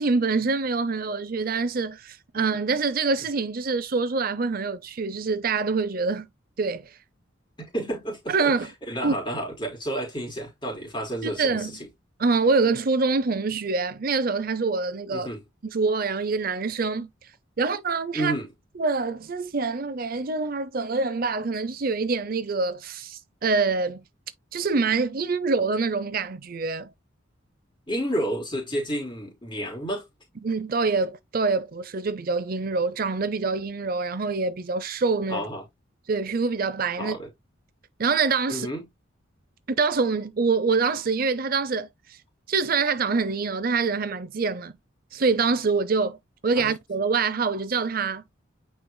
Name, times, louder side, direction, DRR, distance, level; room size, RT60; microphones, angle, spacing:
voice 1, 0.0-6.3 6.6-7.0 8.3-8.7 9.0-9.1 11.2-11.7 12.2-15.3 15.7-17.3 17.6-18.3 18.8-24.0 24.5-26.9 30.4-35.4 36.1-37.2 38.0-38.7 39.8-42.2 42.5-44.7 45.1-46.2 46.4-48.2, right 4 dB, 45° right, 0.6 m, -25 dB
voice 2, 7.6-8.5 8.9-11.7 15.1-15.4 18.1-18.5 27.9-30.0 35.3-35.6 37.0-37.3 38.5-38.8 46.6-46.7, right 1 dB, 25° left, 3.4 m, -30 dB
9.3 x 4.7 x 2.2 m
head